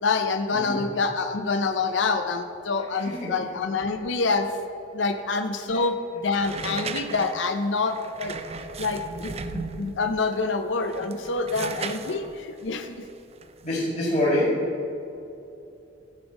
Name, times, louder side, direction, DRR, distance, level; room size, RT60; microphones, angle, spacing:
voice 1, 0.0-4.5 4.9-8.4 8.8-13.0, left 4 dB, 90° left, 7 dB, 0.6 m, -27 dB
sound 1, 6.4-10.1 10.8-13.7, right 4 dB, 35° right, 0.5 m, -36 dB
voice 2, 13.6-14.8, left 1 dB, 40° left, -6 dB, 2.1 m, -25 dB
12.5 x 5.3 x 6.2 m, 2.7 s
head